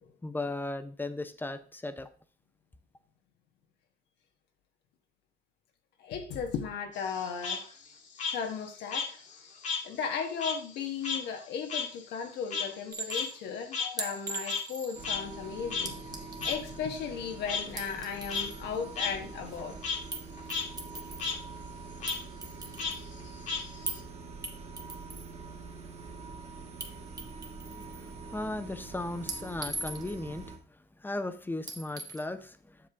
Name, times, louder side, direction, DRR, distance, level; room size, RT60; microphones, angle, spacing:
voice 1, 0.2-2.1 27.7-27.8 28.3-30.5 31.0-32.8, left 2 dB, 10° left, 0.7 m, -36 dB
voice 2, 6.0-7.6 8.3-9.2 9.8-19.8, left 6 dB, 80° left, 1.4 m, -36 dB
Frog, 6.9-9.9 10.2-14.8 15.0-15.2 15.7-15.8 16.4-16.5 17.5-17.6 18.1-18.4 18.9-19.1 19.5-20.0 20.4-20.6 20.9-21.4 22.0-22.2 22.8-24.0, left 5 dB, 45° left, 1.7 m, -34 dB
Chink clink, 12.9-13.3 14.0-15.1 15.8-16.6 17.6-18.6 20.1-20.2 20.5-21.3 22.1-23.0 23.9-24.0 24.4-25.3 26.8-26.9 27.2-28.0 29.3-30.3 31.7-32.2, right 3 dB, 20° right, 1.2 m, -40 dB
sound 1, 14.9-30.6, right 4 dB, 40° right, 1.7 m, -45 dB
7.6 x 6.8 x 3.5 m
cardioid pair, 110°, 17 cm